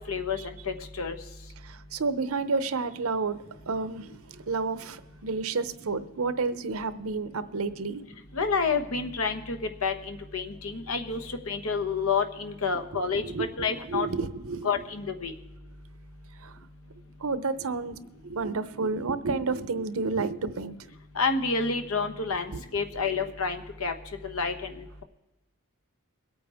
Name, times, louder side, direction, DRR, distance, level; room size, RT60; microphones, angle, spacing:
voice 1, 0.1-1.2 8.3-9.6 9.8-13.2 13.6-14.1 14.6-15.3 21.2-23.9 24.2-24.7, left 5 dB, 70° left, 6 dB, 1.2 m, -29 dB
voice 2, 1.6-8.0 13.2-14.7 16.4-16.6 17.2-18.0 18.2-20.7 22.5-22.6, right 4 dB, 70° right, 13 dB, 0.7 m, -30 dB
22.5 x 8.8 x 3.5 m, 1.0 s
head